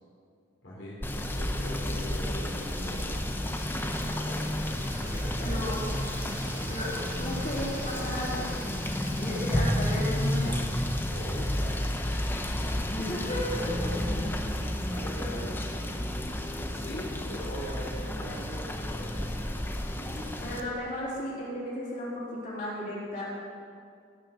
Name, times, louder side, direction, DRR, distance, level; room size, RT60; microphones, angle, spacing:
voice 1, 0.6-4.6 5.0-5.6 11.1-13.1 13.5-14.6 14.9-19.6 19.9-20.6, equal, 65° left, -6 dB, 3.3 m, -42 dB
Rain / Motor vehicle (road), 1.0-20.6, left 1 dB, 10° left, 0.7 m, -31 dB
sound 1, 1.9-13.9, right 1 dB, 15° right, 2.2 m, -44 dB
voice 2, 5.4-5.8 6.7-8.5 9.2-10.6 12.9-13.9 20.4-23.3, left 1 dB, 40° left, -6 dB, 3.8 m, -34 dB
17.0 x 6.6 x 6.8 m, 2.3 s
head